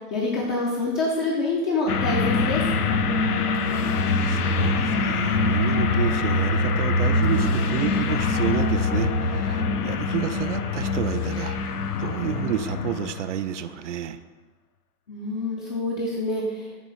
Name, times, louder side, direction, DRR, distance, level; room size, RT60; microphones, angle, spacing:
voice 1, 0.1-2.6 15.1-16.7, left 2 dB, 15° left, -4 dB, 0.5 m, -26 dB
sound 1, 1.9-13.3, left 3 dB, 75° left, 0.7 m, -24 dB
voice 2, 4.3-14.2, right 9 dB, 55° right, 11 dB, 0.5 m, -30 dB
7.4 x 3.0 x 5.4 m, 1.2 s
hypercardioid pair, 130°, 46 cm